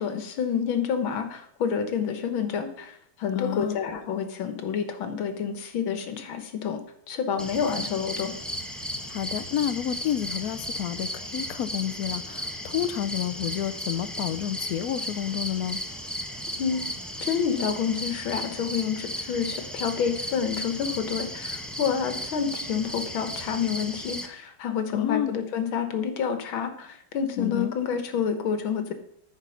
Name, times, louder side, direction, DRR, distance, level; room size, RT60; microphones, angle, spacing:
voice 1, 0.0-2.9 3.2-6.8 7.1-8.3 16.6-16.8 17.2-28.9, left 7 dB, 90° left, 8 dB, 2.0 m, -28 dB
voice 2, 3.3-3.8 9.1-15.8 24.9-25.3 27.4-27.7, left 10 dB, 70° left, 11 dB, 0.8 m, -30 dB
sound 1, 7.4-24.3, equal, ahead, 0.3 m, -35 dB
13.5 x 4.8 x 5.7 m, 0.70 s
omnidirectional pair, 2.1 m